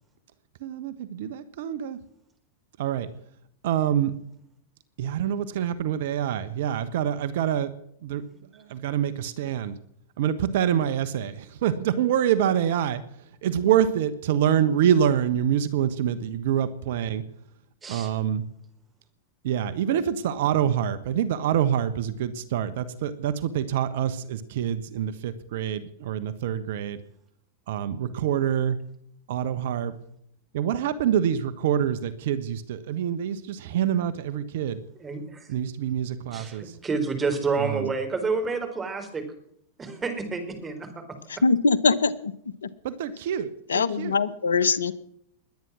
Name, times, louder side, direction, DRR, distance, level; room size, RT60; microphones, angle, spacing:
voice 1, 0.6-2.0 2.8-3.1 3.6-4.1 5.0-7.7 8.0-8.2 8.7-9.7 10.2-13.0 13.4-17.2 17.9-18.4 19.4-27.0 27.7-28.8 29.3-29.9 30.5-34.8 35.5-36.6 37.6-37.9 42.8-43.5 43.7-44.2, right 9 dB, 65° right, 14 dB, 1.1 m, -26 dB
voice 2, 35.0-35.5 36.3-39.2 39.8-41.0, right 4 dB, 20° right, 6 dB, 4.1 m, -29 dB
voice 3, 41.4-42.3 42.6-42.7 43.7-44.9, left 4 dB, 85° left, 18 dB, 0.9 m, -22 dB
21.5 x 9.5 x 6.2 m, 0.70 s
hypercardioid pair, 100°, 0 cm